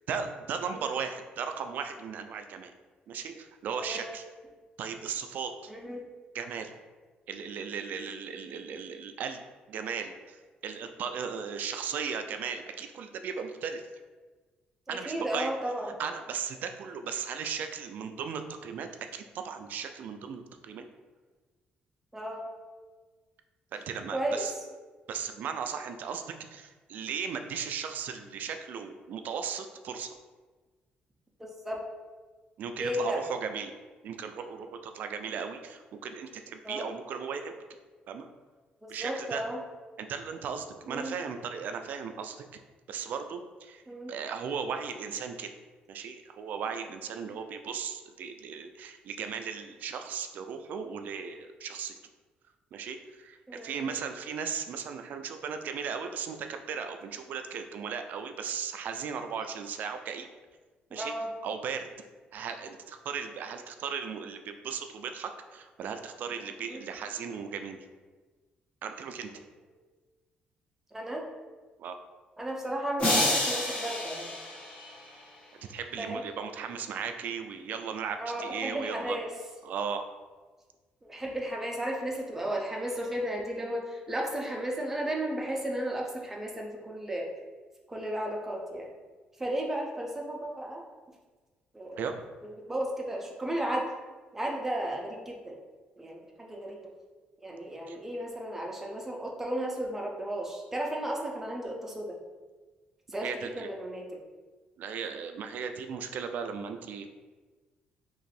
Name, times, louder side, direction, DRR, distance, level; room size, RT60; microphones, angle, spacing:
voice 1, 0.1-2.7 3.1-4.2 4.8-5.7 6.3-6.7 7.3-9.4 9.7-13.8 14.9-15.5 16.0-20.9 23.7-24.5 25.1-26.2 26.5-30.1 32.6-33.7 34.0-37.6 38.1-38.3 38.9-39.4 40.0-42.6 42.9-45.5 45.9-52.0 52.7-60.3 60.9-61.1 61.4-61.9 62.3-67.8 68.8-69.3 71.8-72.0 75.7-79.2 79.6-80.0 92.0-92.1 97.9-98.0 103.2-103.7 104.8-107.1, right 6 dB, 60° right, 7 dB, 0.3 m, -36 dB
voice 2, 3.8-4.1 5.7-6.1 14.9-16.0 22.1-22.4 24.1-24.5 31.4-31.8 32.8-33.2 36.6-36.9 38.8-39.6 40.9-41.2 43.9-44.2 47.3-47.4 53.5-54.0 60.9-61.3 66.6-66.8 70.9-71.3 72.4-74.4 76.0-76.2 78.2-79.3 81.1-87.3 87.9-88.9 89.4-90.8 91.7-92.1 92.4-93.9 94.3-95.6 96.0-96.8 97.4-102.2 103.1-104.2, right 1 dB, 10° right, 0 dB, 0.6 m, -34 dB
sound 1, 73.0-75.3, left 1 dB, 40° left, 1.4 m, -29 dB
3.0 x 2.6 x 4.1 m, 1.3 s
cardioid pair, 135°, 3 cm